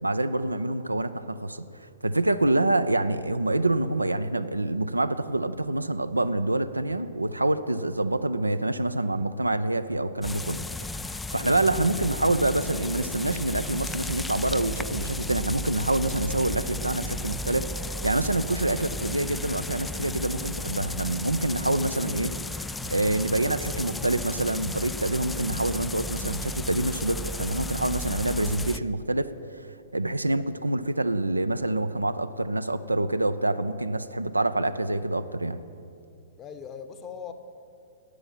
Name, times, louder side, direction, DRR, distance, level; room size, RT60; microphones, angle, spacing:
voice 1, 0.0-1.6 2.0-10.7 11.0-22.3 22.6-29.3 29.9-35.6, right 2 dB, 85° right, 11 dB, 0.6 m, -26 dB
sound 1, 10.2-28.8, left 1 dB, 5° left, 0.3 m, -34 dB
voice 2, 36.4-37.3, left 7 dB, 25° left, 9 dB, 1.0 m, -40 dB
13.0 x 8.8 x 9.1 m, 2.6 s
figure-of-eight pair, 110°, 0 cm